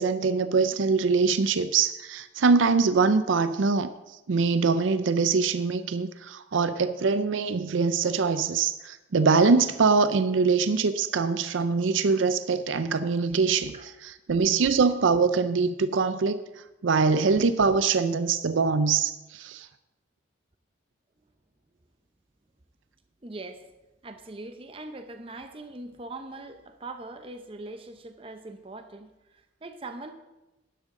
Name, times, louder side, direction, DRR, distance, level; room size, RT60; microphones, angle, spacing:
voice 1, 0.0-3.9 4.3-13.7 14.3-16.4 16.8-19.7, right 4 dB, 75° right, 12 dB, 0.5 m, -23 dB
voice 2, 13.4-13.9 23.2-23.7 24.0-30.1, right 2 dB, 30° right, 7 dB, 0.7 m, -41 dB
11.5 x 11.0 x 3.8 m, 1.0 s
head